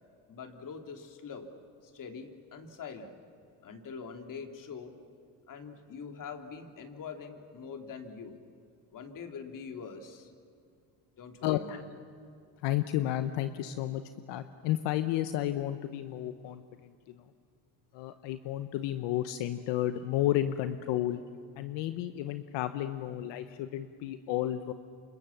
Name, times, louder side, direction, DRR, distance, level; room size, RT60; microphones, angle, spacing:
voice 1, 0.3-1.5 1.8-3.1 3.6-4.9 5.5-8.4 8.9-10.3 11.2-11.9 19.9-20.0, left 5 dB, 45° left, 5 dB, 3.2 m, -44 dB
voice 2, 11.4-11.8 12.6-14.0 14.3-17.2 17.9-21.2 21.6-24.7, left 13 dB, 80° left, 10 dB, 1.1 m, -32 dB
29.0 x 26.5 x 7.3 m, 2.4 s
cardioid pair, 105°, 42 cm